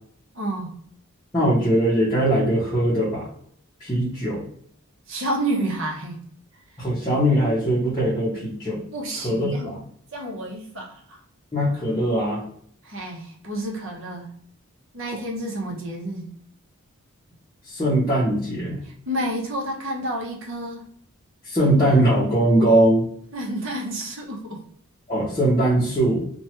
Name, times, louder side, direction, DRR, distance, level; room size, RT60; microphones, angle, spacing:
voice 1, 0.3-0.7 5.1-6.2 8.9-9.7 10.1-11.2 12.8-14.3 14.9-16.2 18.8-20.8 23.3-24.6, right 1 dB, 60° right, -1 dB, 0.8 m, -30 dB
voice 2, 1.3-3.3 3.8-4.4 6.8-8.8 9.2-9.8 11.5-12.4 17.7-18.8 21.4-23.1 25.1-26.2, right 1 dB, 20° left, -8 dB, 0.6 m, -21 dB
2.9 x 2.2 x 2.8 m, 0.63 s
head